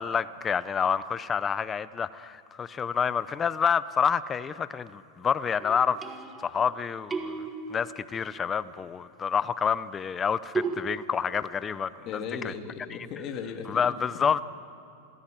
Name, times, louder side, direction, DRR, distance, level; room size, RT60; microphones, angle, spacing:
voice 1, 0.0-6.0 6.4-12.5 12.9-13.0 13.7-14.4, left 7 dB, 20° left, 0.6 m, -28 dB
sound 1, 5.6-6.7 7.1-8.3 10.5-10.9, right 4 dB, 15° right, 1.6 m, -34 dB
voice 2, 12.1-14.3, left 6 dB, 35° left, 2.1 m, -37 dB
27.0 x 16.0 x 9.0 m
supercardioid pair, 145°, 0 cm